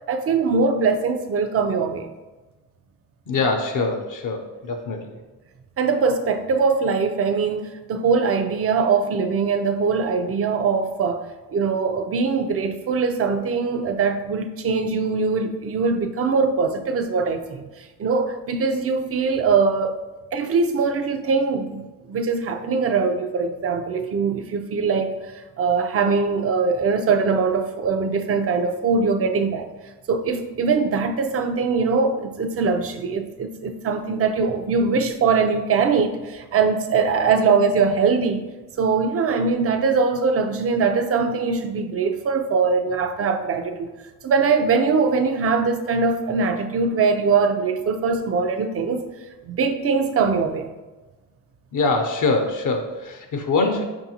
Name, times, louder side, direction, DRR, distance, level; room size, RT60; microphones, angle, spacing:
voice 1, 0.1-2.1 5.8-17.7 18.0-19.9 20.3-25.2 25.6-29.7 30.1-38.4 38.8-43.9 44.2-49.1 49.4-50.7, right 5 dB, 35° right, 7 dB, 0.4 m, -22 dB
voice 2, 3.3-5.2 51.7-53.8, left 3 dB, 50° left, 4 dB, 0.6 m, -23 dB
5.4 x 2.6 x 2.8 m, 1.2 s
supercardioid pair, 70°, 40 cm